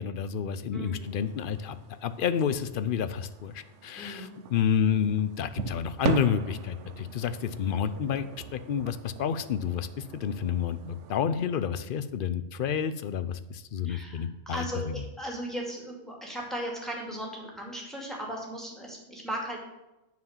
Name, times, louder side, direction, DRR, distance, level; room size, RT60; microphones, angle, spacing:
voice 1, 0.0-1.8 2.0-8.3 8.5-15.0, left 8 dB, 55° left, 13 dB, 0.6 m, -29 dB
voice 2, 0.7-1.2 4.0-4.4 13.9-19.6, right 1 dB, ahead, -1 dB, 2.2 m, -37 dB
sound 1, 1.0-11.2, right 6 dB, 75° right, 1.0 m, -40 dB
9.5 x 4.8 x 7.1 m, 0.96 s
omnidirectional pair, 1.3 m